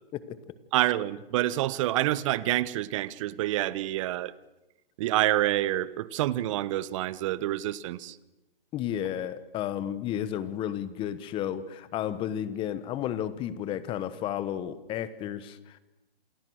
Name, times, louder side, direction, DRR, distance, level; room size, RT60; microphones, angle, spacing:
voice 1, 0.1-0.5 8.7-15.8, left 10 dB, 20° left, 15 dB, 1.3 m, -32 dB
voice 2, 0.7-4.3 5.0-8.2, right 14 dB, 35° right, 18 dB, 1.0 m, -27 dB
28.0 x 27.5 x 6.5 m, 1.0 s
hypercardioid pair, 150°, 29 cm